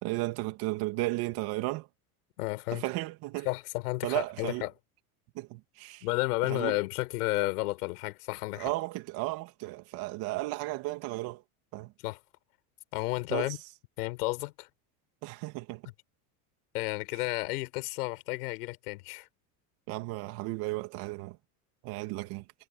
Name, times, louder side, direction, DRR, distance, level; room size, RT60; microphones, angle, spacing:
voice 1, 0.0-1.9 2.7-3.5 4.0-4.7 5.3-6.0 6.4-6.8 8.5-11.4 11.7-11.9 13.3-13.5 15.2-15.8 19.9-21.4 21.8-22.5, right 20 dB, 55° right, 2.8 m, -34 dB
voice 2, 2.4-2.8 3.4-4.7 6.0-8.7 12.0-12.2 12.9-13.6 14.0-14.7 16.7-19.3, left 21 dB, 80° left, 4.9 m, -32 dB
supercardioid pair, 150°, 45 cm